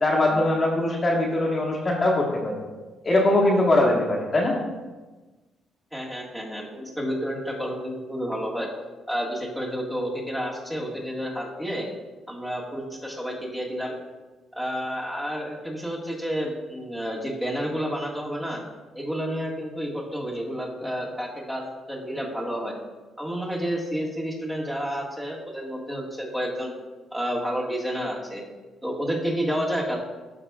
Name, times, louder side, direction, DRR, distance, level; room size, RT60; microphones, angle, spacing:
voice 1, 0.0-2.5 3.0-4.6, left 1 dB, 35° left, -2 dB, 1.5 m, -21 dB
voice 2, 5.9-8.7 9.1-11.9 12.3-13.9 14.5-18.6 18.9-22.8 23.2-26.7 27.1-28.4 28.8-30.0, equal, 10° right, -3 dB, 1.7 m, -30 dB
12.5 x 4.9 x 2.4 m, 1.2 s
cardioid pair, 90°, 0 cm